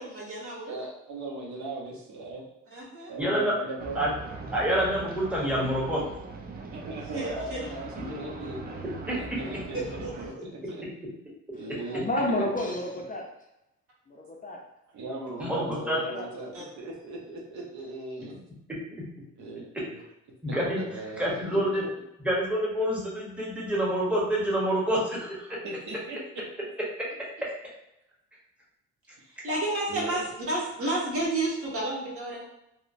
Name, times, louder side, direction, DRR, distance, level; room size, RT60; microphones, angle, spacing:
voice 1, 0.0-0.8 2.7-3.1 7.1-7.7 9.7-10.7 16.5-16.6 29.3-32.4, right 2 dB, 50° right, -5 dB, 1.2 m, -31 dB
voice 2, 0.7-2.4 3.1-4.0 6.7-8.6 9.1-9.8 10.2-10.3 11.5-12.7 14.9-18.3 19.4-20.0 20.5-21.9 25.6-26.2 29.9-30.2, right 2 dB, 70° right, -2 dB, 0.7 m, -38 dB
voice 3, 3.2-3.5 3.9-4.1 4.5-6.0 9.1-9.2 15.4-16.0 20.4-20.8 21.2-21.8 22.2-25.6, equal, 5° right, -5 dB, 0.9 m, -27 dB
sound 1, 3.8-10.3, right 3 dB, 30° right, 0.4 m, -40 dB
voice 4, 11.8-13.2 14.1-14.6 15.9-16.3, left 1 dB, 30° left, -1 dB, 0.4 m, -30 dB
2.9 x 2.1 x 2.5 m, 0.84 s
cardioid pair, 90°, 30 cm